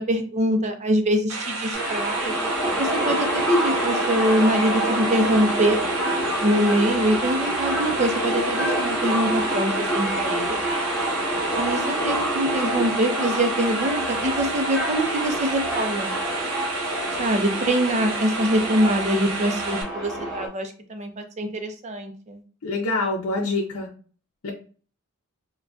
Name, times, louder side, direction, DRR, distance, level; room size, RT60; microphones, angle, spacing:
voice 1, 0.0-2.3 2.8-5.8 6.4-10.6 11.6-16.1 17.2-22.4, equal, 30° right, 5 dB, 0.5 m, -24 dB
sound 1, 1.3-19.8, right 3 dB, 75° right, 0.8 m, -31 dB
sound 2, 1.7-20.5, right 1 dB, 5° left, 1.1 m, -27 dB
voice 2, 22.6-23.9 24.4-24.5, left 2 dB, 80° left, -3 dB, 0.6 m, -25 dB
3.7 x 2.2 x 2.3 m, 0.39 s
head